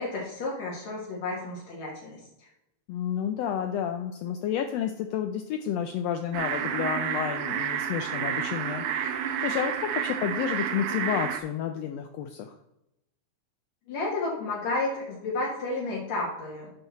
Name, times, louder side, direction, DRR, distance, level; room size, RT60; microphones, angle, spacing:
voice 1, 0.0-2.2 13.9-16.7, left 2 dB, 65° left, -4 dB, 2.7 m, -31 dB
voice 2, 2.9-12.5, left 9 dB, 85° left, 6 dB, 1.4 m, -31 dB
sound 1, 6.3-11.4, right 8 dB, 90° right, 2.2 m, -30 dB
8.9 x 5.8 x 4.1 m, 0.88 s
omnidirectional pair, 3.5 m